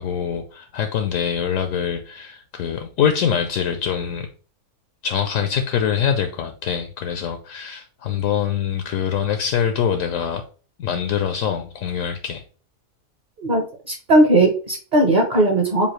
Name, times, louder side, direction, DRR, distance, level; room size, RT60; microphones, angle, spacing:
voice 1, 0.0-4.3 5.0-10.4 10.8-12.4, left 8 dB, 70° left, 0.9 m, -24 dB
voice 2, 13.4-15.9, right 1 dB, 35° right, 0.9 m, -18 dB
7.0 x 2.3 x 3.1 m
omnidirectional pair, 1.5 m